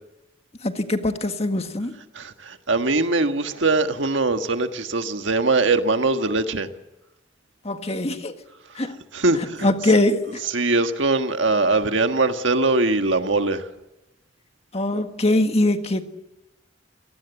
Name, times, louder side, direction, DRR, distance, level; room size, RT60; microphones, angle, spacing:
voice 1, 0.6-1.9 7.6-8.4 8.7-9.0 9.6-10.4 14.7-16.1, left 1 dB, 35° left, 1.7 m, -22 dB
voice 2, 2.1-6.7 9.1-10.0 10.3-13.6, right 3 dB, 70° right, 1.6 m, -22 dB
27.5 x 18.5 x 8.2 m
head